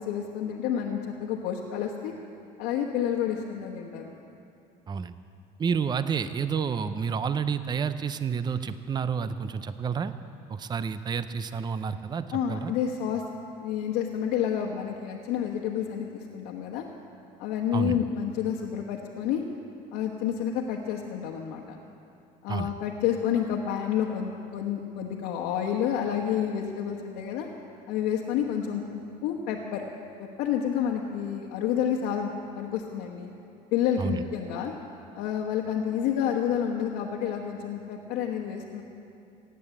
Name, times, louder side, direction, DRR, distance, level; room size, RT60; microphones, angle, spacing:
voice 1, 0.0-2.1 2.6-4.2 12.3-13.2 13.6-16.9 17.4-19.4 19.9-21.8 22.4-27.5 27.9-29.8 30.2-33.3 33.7-34.7 35.1-38.8, left 9 dB, 85° left, -1 dB, 1.3 m, -29 dB
voice 2, 5.6-10.1 10.5-12.7 17.7-18.0 22.5-22.7 34.0-34.2, right 6 dB, 25° right, 12 dB, 0.6 m, -29 dB
16.0 x 9.2 x 8.3 m, 2.6 s
cardioid pair, 105°, 16 cm